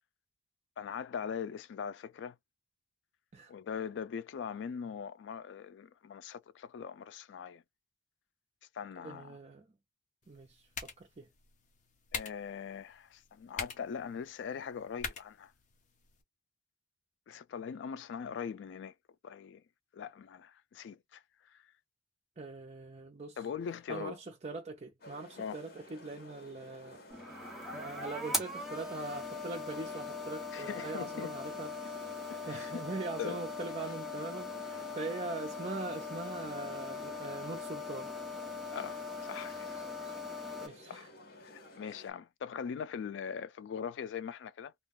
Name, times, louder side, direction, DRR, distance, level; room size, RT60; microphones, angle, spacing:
voice 1, 0.8-2.4 3.5-7.6 8.7-9.3 12.1-15.5 17.3-18.9 19.2-19.6 19.9-21.2 21.5-21.6 23.4-24.2 25.4-25.6 30.5-31.3 32.3-32.8 33.2-33.4 38.7-39.8 40.9-41.1 41.4-44.7, left 7 dB, 80° left, 0.3 m, -41 dB
voice 2, 9.0-9.7 10.3-11.3 22.4-23.5 23.9-27.0 27.7-38.1 40.6-41.1, right 3 dB, 40° right, 0.5 m, -42 dB
sound 1, 10.2-16.2, left 5 dB, 45° left, 0.7 m, -45 dB
sound 2, 25.0-42.1, left 2 dB, 60° left, 1.2 m, -54 dB
sound 3, 27.1-40.7, left 3 dB, ahead, 0.8 m, -40 dB
2.5 x 2.3 x 3.5 m
head